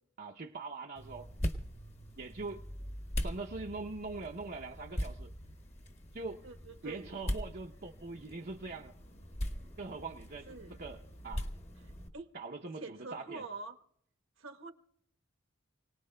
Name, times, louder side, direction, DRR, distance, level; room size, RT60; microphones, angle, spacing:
voice 1, 0.2-1.3 2.2-2.6 3.2-5.3 6.1-6.4 6.8-8.9 9.8-11.5 12.3-13.4, right 3 dB, 45° right, 0 dB, 0.7 m, -42 dB
sound 1, 1.0-12.1, equal, 30° left, 1.3 m, -41 dB
voice 2, 6.4-7.1 10.5-10.7 12.1-12.3 12.8-13.8 14.4-14.7, right 3 dB, 75° right, 4 dB, 1.1 m, -45 dB
29.5 x 18.5 x 2.2 m, 0.71 s
head